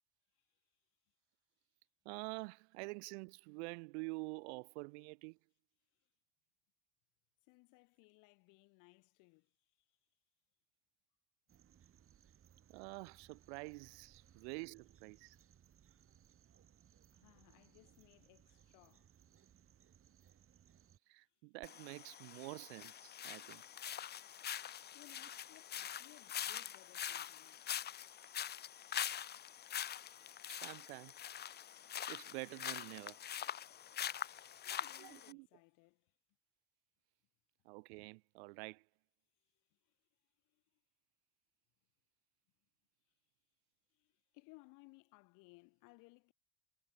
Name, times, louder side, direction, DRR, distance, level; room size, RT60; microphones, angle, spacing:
voice 1, 2.0-5.4 12.7-15.4 21.1-23.6 30.5-31.1 32.1-33.2 35.0-35.5 37.6-38.8, right 31 dB, 65° right, 1.1 m, -48 dB
voice 2, 7.5-9.5 9.9-10.0 17.1-19.1 24.9-27.6 34.6-36.1 39.7-39.9 40.5-40.6 43.9-46.3, left 27 dB, 65° left, 7.4 m, -64 dB
sound 1, 11.5-21.0, right 9 dB, 40° right, 5.2 m, -66 dB
sound 2, 21.6-35.3, left 10 dB, 30° left, 0.7 m, -44 dB
hypercardioid pair, 75°, 34 cm